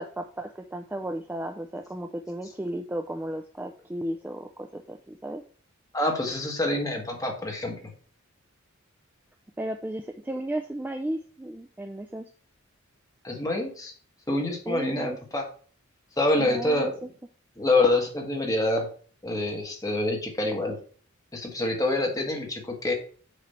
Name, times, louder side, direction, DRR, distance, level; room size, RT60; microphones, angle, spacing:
voice 1, 0.0-5.4 9.6-12.3 14.7-15.2 16.4-17.1, right 1 dB, 10° right, 4 dB, 0.3 m, -34 dB
voice 2, 5.9-7.8 13.2-13.9 14.3-15.5 16.2-17.0 17.6-18.9 19.2-20.8 21.3-22.9, left 2 dB, 15° left, 0 dB, 1.5 m, -26 dB
6.6 x 3.2 x 5.5 m, 0.43 s
head